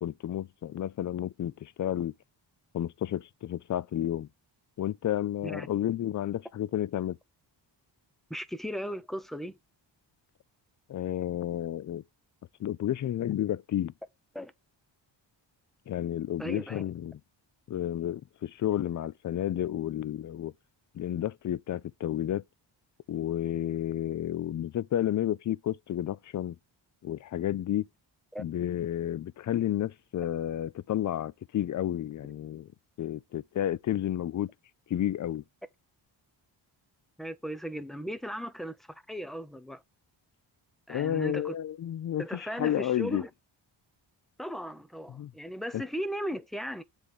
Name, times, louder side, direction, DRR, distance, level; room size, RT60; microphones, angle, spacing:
voice 1, 0.0-2.1 2.7-4.3 4.8-7.2 10.9-12.0 12.6-13.9 15.9-17.2 17.7-20.5 20.9-22.4 23.1-26.6 27.0-27.9 28.4-32.7 33.0-34.5 34.9-35.4 40.9-43.2 45.1-45.3 45.7-45.8, left 11 dB, 45° left, 0.4 m, -31 dB
voice 2, 8.3-9.6 14.3-14.5 16.4-16.8 28.3-28.4 37.2-39.8 40.9-41.6 42.2-43.3 44.4-46.8, equal, ahead, 0.7 m, -37 dB
7.7 x 3.5 x 6.4 m
cardioid pair, 90°, 46 cm